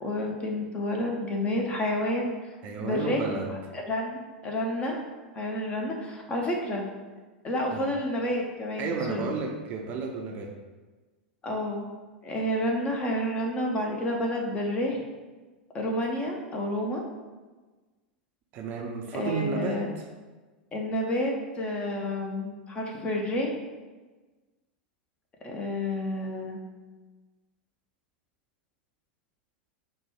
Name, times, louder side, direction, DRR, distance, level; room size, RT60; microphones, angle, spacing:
voice 1, 0.0-2.3 2.8-3.4 3.7-5.0 5.3-6.9 7.4-9.3 11.4-11.9 12.2-15.0 15.7-17.0 19.1-19.9 20.7-23.6 25.4-26.6, left 1 dB, 20° left, 1 dB, 0.7 m, -30 dB
voice 2, 2.6-3.6 7.7-7.9 8.8-10.6 18.5-20.1, right 4 dB, 35° right, 2 dB, 0.5 m, -32 dB
4.1 x 2.2 x 4.6 m, 1.3 s
figure-of-eight pair, 90°, 5 cm